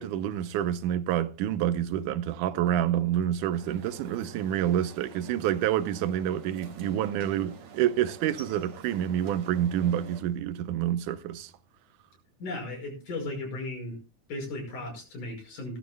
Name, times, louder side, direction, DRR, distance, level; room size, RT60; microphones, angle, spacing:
voice 1, 0.0-11.5, right 11 dB, 90° right, 2.3 m, -28 dB
sound 1, 3.5-10.2, right 6 dB, 65° right, 2.9 m, -47 dB
voice 2, 12.4-14.0 14.3-15.8, left 2 dB, 90° left, 7.1 m, -36 dB
18.0 x 13.0 x 2.2 m
omnidirectional pair, 3.5 m